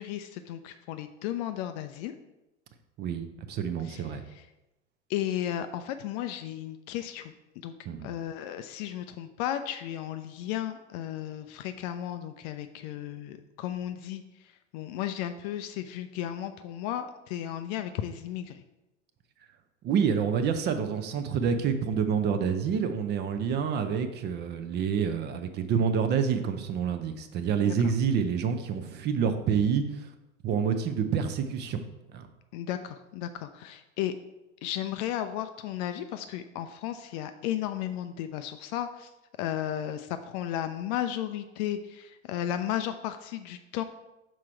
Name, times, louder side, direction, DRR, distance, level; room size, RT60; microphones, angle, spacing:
voice 1, 0.0-2.1 3.8-4.4 5.1-7.7 8.0-18.6 27.6-27.8 32.5-34.1 34.6-39.1 39.4-43.8, left 11 dB, 35° left, 9 dB, 0.4 m, -34 dB
voice 2, 3.0-4.2 7.9-8.1 19.8-30.1 30.4-31.8 32.1-32.3, right 7 dB, 30° right, 9 dB, 0.6 m, -28 dB
6.0 x 4.5 x 4.4 m, 0.98 s
figure-of-eight pair, 80°, 36 cm